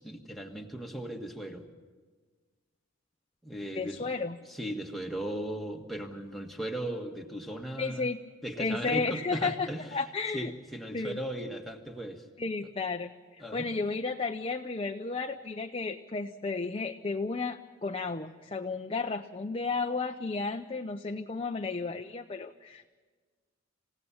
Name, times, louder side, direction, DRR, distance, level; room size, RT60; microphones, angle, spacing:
voice 1, 0.0-1.7 3.4-4.1 4.5-8.1 8.4-10.0 10.3-12.2 13.4-13.7, right 1 dB, ahead, 1 dB, 1.5 m, -37 dB
voice 2, 3.7-4.4 7.8-8.2 8.6-10.5 10.9-11.2 12.4-22.9, left 4 dB, 25° left, 4 dB, 0.6 m, -33 dB
27.5 x 16.5 x 7.1 m, 1.4 s
head